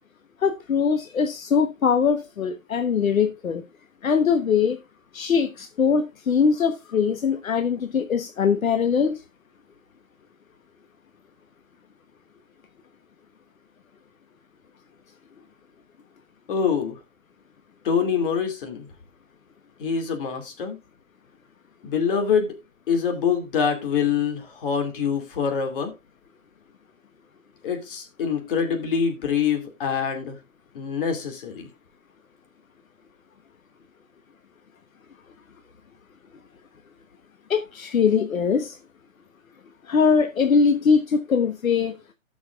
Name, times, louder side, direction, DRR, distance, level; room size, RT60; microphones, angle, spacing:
voice 1, 0.4-3.6 4.0-4.8 5.1-9.2 37.5-38.8 39.9-42.0, left 6 dB, 75° left, 1.2 m, -22 dB
voice 2, 16.5-17.0 17.8-18.9 19.8-20.8 21.8-22.6 22.9-25.9 27.6-30.4 30.7-31.7, left 7 dB, 40° left, 2.5 m, -25 dB
17.0 x 6.2 x 2.4 m
hypercardioid pair, 155°, 41 cm